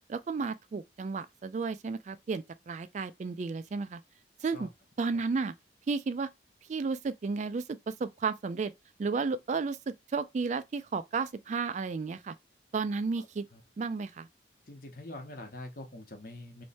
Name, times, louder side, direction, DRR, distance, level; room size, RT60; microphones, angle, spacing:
voice 1, 0.1-4.0 4.4-4.7 5.0-5.5 5.9-6.3 6.7-8.7 9.0-12.3 12.7-13.4 13.8-14.3, right 4 dB, 40° right, 0.3 m, -33 dB
voice 2, 14.7-16.6, left 1 dB, 50° left, 1.1 m, -44 dB
3.2 x 3.2 x 4.2 m
head